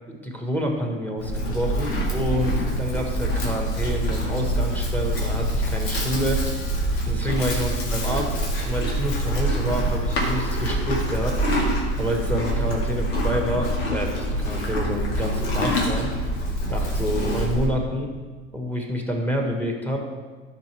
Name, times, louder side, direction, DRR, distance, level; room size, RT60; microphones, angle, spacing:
voice 1, 0.1-6.4 7.1-11.4 12.0-16.1 16.7-18.1 18.5-20.1, equal, 5° left, 1 dB, 1.5 m, -28 dB
Livestock farm animals working animals, 1.2-17.7, right 1 dB, 80° left, 2.2 m, -25 dB
12.5 x 5.8 x 3.4 m, 1.4 s
hypercardioid pair, 100°, 31 cm